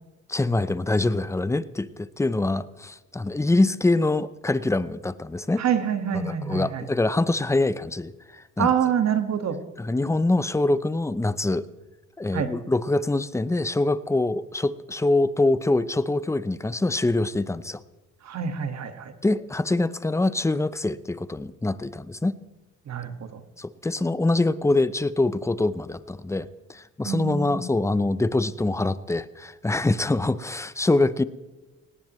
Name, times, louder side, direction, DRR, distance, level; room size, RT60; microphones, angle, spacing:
voice 1, 0.3-5.6 6.1-8.7 9.8-11.7 12.2-17.8 19.2-22.4 23.6-31.2, left 2 dB, 10° left, 16 dB, 0.6 m, -24 dB
voice 2, 5.6-6.9 8.6-9.6 12.3-12.5 18.2-19.1 22.9-23.4 27.0-27.7, right 8 dB, 60° right, 8 dB, 1.8 m, -26 dB
18.5 x 18.0 x 3.1 m, 1.2 s
cardioid pair, 90°, 30 cm